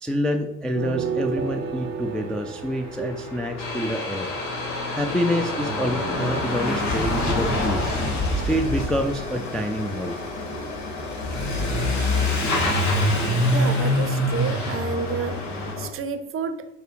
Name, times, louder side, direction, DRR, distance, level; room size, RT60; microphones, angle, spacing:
voice 1, 0.0-4.3 4.9-7.8 8.3-10.2, equal, ahead, 4 dB, 0.3 m, -27 dB
sound 1, 0.7-4.5, right 6 dB, 80° right, 0.5 m, -32 dB
Truck / Accelerating revving vroom, 2.1-2.2 2.3-15.7, left 1 dB, 45° left, 1.5 m, -26 dB
sound 2, 3.6-15.9, left 3 dB, 75° left, 1.0 m, -35 dB
voice 2, 13.5-15.4 15.8-16.7, right 6 dB, 35° right, 10 dB, 0.6 m, -30 dB
4.7 x 4.3 x 4.7 m, 0.94 s
figure-of-eight pair, 50°, 38 cm